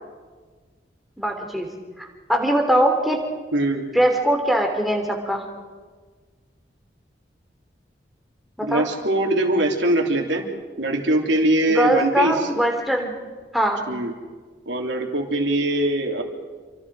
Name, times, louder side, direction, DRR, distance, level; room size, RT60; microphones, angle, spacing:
voice 1, 1.2-1.7 2.0-3.2 3.9-5.4 8.6-8.9 11.7-13.1 13.5-13.9, equal, ahead, 2 dB, 3.3 m, -21 dB
voice 2, 3.5-3.8 8.6-10.4 10.8-12.4 13.9-14.1 14.6-16.2, right 1 dB, 85° right, 2 dB, 3.4 m, -22 dB
29.0 x 25.0 x 5.0 m, 1.4 s
head